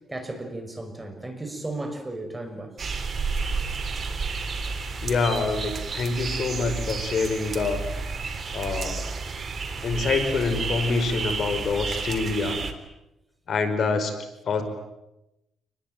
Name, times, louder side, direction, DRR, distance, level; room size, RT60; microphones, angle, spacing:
voice 1, 0.1-2.7, right 2 dB, 15° right, 6 dB, 5.9 m, -34 dB
sound 1, 2.8-12.7, right 4 dB, 40° right, 3.6 m, -31 dB
voice 2, 5.0-7.9 8.5-9.0 9.8-12.6 13.5-14.2 14.4-14.6, left 4 dB, 55° left, 7 dB, 5.1 m, -26 dB
28.5 x 21.5 x 9.3 m, 0.91 s
cardioid pair, 90°, 0 cm